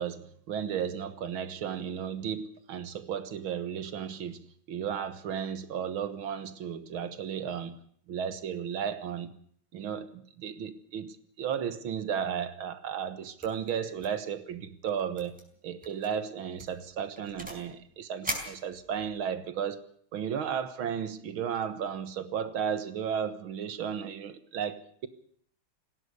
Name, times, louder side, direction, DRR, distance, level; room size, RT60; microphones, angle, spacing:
voice 1, 0.0-7.8 8.1-9.4 9.7-15.4 15.6-19.8 20.1-25.1, right 8 dB, 70° right, 2.1 m, -34 dB
sound 1, 13.4-13.7 14.0-14.3 14.5-14.6 15.2-15.4 15.8-16.1 16.6-17.7 18.2-19.2, equal, 5° right, 4.5 m, -39 dB
19.0 x 16.5 x 8.3 m
omnidirectional pair, 2.3 m